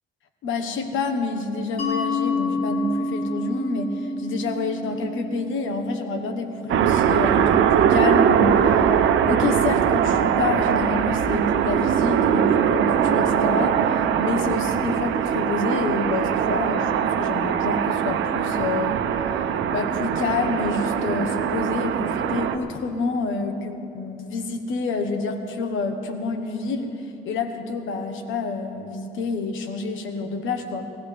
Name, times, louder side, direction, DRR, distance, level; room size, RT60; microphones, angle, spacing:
voice 1, 0.4-19.0 19.7-26.9 27.2-30.9, left 3 dB, 80° left, 6 dB, 1.3 m, -28 dB
Mallet percussion, 1.8-7.2, left 2 dB, 45° left, 4.5 m, -29 dB
sound 1, 6.7-22.6, right 8 dB, 75° right, 0.8 m, -21 dB
21.5 x 15.5 x 3.4 m, 2.8 s
cardioid pair, 90°, 20 cm